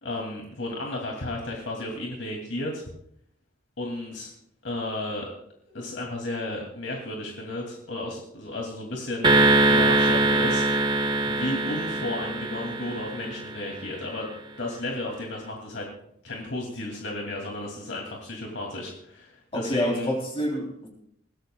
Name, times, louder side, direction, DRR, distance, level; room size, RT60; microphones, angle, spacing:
voice 1, 0.0-2.9 3.8-4.3 4.6-5.3 5.7-10.7 11.3-14.3 14.6-15.9 16.2-20.1, left 1 dB, 85° left, 0 dB, 2.7 m, -33 dB
sound 1, 9.2-13.7, right 2 dB, 25° right, 0.9 m, -22 dB
voice 2, 19.5-20.9, equal, 30° left, -1 dB, 3.5 m, -28 dB
22.0 x 16.5 x 2.3 m, 0.68 s
head